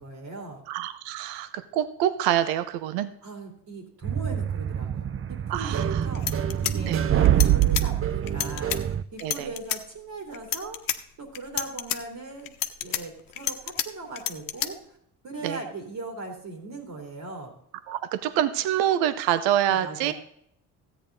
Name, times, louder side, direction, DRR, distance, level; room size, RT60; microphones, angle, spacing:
voice 1, 0.0-0.6 3.2-12.5 12.8-14.8 15.2-17.5 19.7-20.1, right 3 dB, 60° right, 3 dB, 3.0 m, -39 dB
voice 2, 0.7-3.1 5.5-6.1 6.9-7.0 9.2-9.5 15.4-15.6 17.9-20.1, right 11 dB, 85° right, 13 dB, 0.8 m, -26 dB
sound 1, 4.0-9.0, right 11 dB, 35° right, 0.6 m, -25 dB
sound 2, 5.8-5.9 6.1-7.9 8.3-8.8 9.2-9.8 10.3-11.0 11.3-12.0 12.5-13.9 14.2-14.7, left 11 dB, 65° left, 1.0 m, -29 dB
14.0 x 8.9 x 3.8 m, 0.70 s
supercardioid pair, 60°, 37 cm